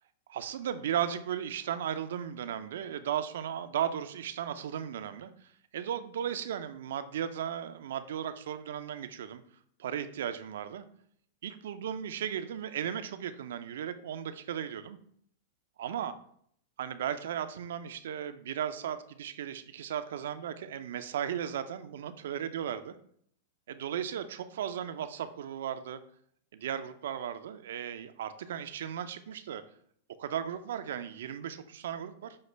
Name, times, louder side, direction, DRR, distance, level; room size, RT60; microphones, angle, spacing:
voice 1, 0.3-5.3 5.7-9.4 9.8-10.8 11.4-15.0 15.8-16.1 16.8-23.0 23.7-26.0 26.5-29.6 30.2-32.4, right 9 dB, 75° right, 11 dB, 0.4 m, -36 dB
6.3 x 2.1 x 3.2 m, 0.65 s
hypercardioid pair, 115°, 0 cm